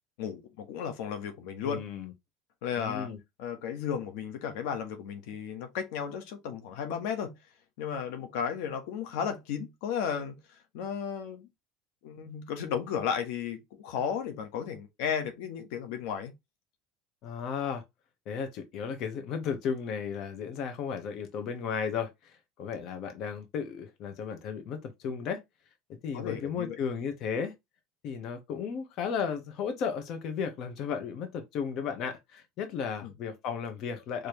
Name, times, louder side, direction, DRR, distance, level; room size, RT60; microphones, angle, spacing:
voice 1, 0.2-1.8 2.6-3.1 3.4-7.3 7.8-11.5 12.0-16.3 26.1-26.8 33.0-33.1, left 7 dB, 80° left, 1.3 m, -34 dB
voice 2, 1.6-2.1 2.8-3.2 17.2-17.8 18.3-25.4 25.9-27.5 28.0-34.3, left 6 dB, 55° left, 1.3 m, -34 dB
5.0 x 3.2 x 3.1 m
cardioid pair, 130°, 0 cm